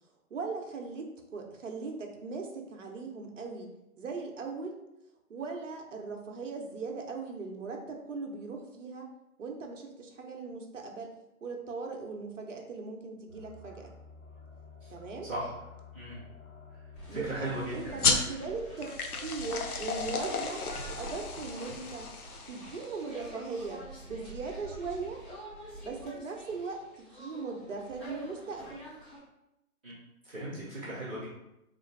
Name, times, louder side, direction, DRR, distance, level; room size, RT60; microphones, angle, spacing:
voice 1, 0.3-3.7 4.0-4.8 5.3-9.1 9.4-11.1 11.4-13.9 14.9-15.3 17.1-20.7 20.9-22.1 22.5-25.2 25.8-28.8, right 4 dB, 60° right, 2 dB, 0.8 m, -39 dB
sound 1, 13.3-18.3, left 5 dB, 65° left, 1.1 m, -50 dB
sound 2, 16.9-29.2, right 1 dB, 10° left, 0.9 m, -47 dB
voice 2, 17.1-18.0 29.8-29.9 30.2-31.2, right 1 dB, 5° right, -14 dB, 0.6 m, -37 dB
sound 3, 18.0-23.1, left 4 dB, 90° left, 0.7 m, -33 dB
3.8 x 2.5 x 3.3 m, 0.89 s
figure-of-eight pair, 150°, 43 cm